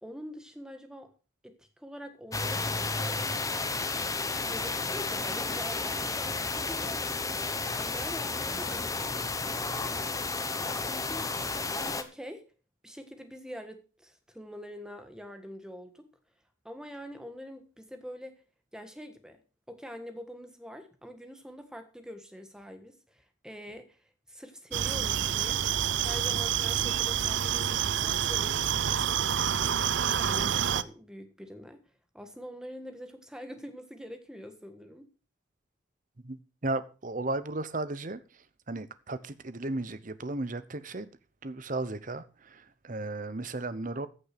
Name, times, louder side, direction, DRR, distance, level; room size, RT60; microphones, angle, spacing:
voice 1, 0.0-1.1 1.4-3.3 4.5-10.1 10.8-11.4 12.0-12.5 12.8-16.1 16.6-18.3 18.7-19.4 19.7-25.6 26.0-29.0 29.5-31.8 32.1-35.0, equal, 5° right, 1.5 m, -45 dB
sound 1, 2.3-12.0, left 3 dB, 15° left, 0.9 m, -32 dB
sound 2, 24.7-30.8, right 9 dB, 65° right, 0.6 m, -28 dB
voice 2, 36.2-41.1 41.4-44.1, right 2 dB, 40° right, 0.8 m, -35 dB
14.5 x 6.7 x 5.9 m
head